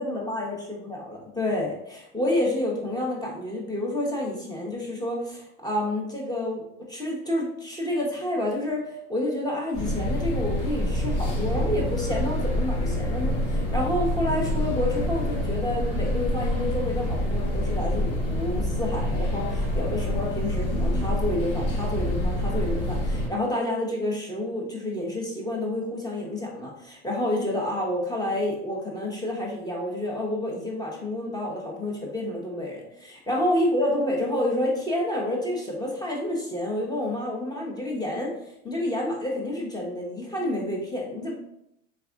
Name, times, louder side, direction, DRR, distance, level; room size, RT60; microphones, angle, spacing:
voice 1, 0.0-38.3 38.6-41.3, left 1 dB, 10° left, -2 dB, 0.9 m, -29 dB
sound 1, 9.7-23.3, left 1 dB, 40° left, 1.3 m, -27 dB
3.5 x 3.3 x 2.4 m, 0.78 s
supercardioid pair, 110°, 36 cm